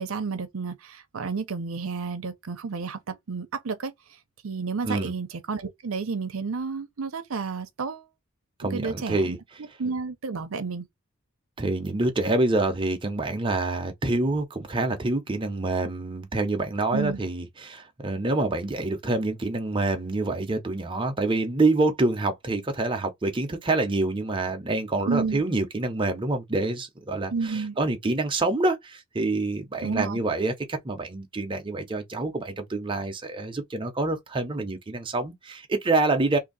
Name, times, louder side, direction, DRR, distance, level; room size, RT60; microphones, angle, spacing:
voice 1, 0.0-3.9 4.4-8.1 8.7-9.4 9.8-10.9 16.9-17.2 25.1-25.4 27.3-27.8 29.8-30.2, right 4 dB, 85° right, 0.6 m, -31 dB
voice 2, 8.6-9.4 11.6-36.4, right 2 dB, 25° right, 0.7 m, -26 dB
2.8 x 2.7 x 3.9 m
head